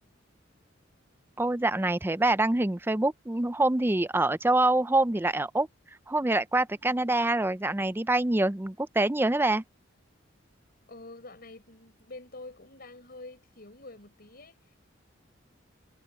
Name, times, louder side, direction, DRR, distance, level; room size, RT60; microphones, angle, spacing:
voice 1, 1.4-5.7 6.1-9.6, right 2 dB, 10° right, 0.5 m, -25 dB
voice 2, 10.9-14.8, left 2 dB, 50° left, 4.8 m, -47 dB
head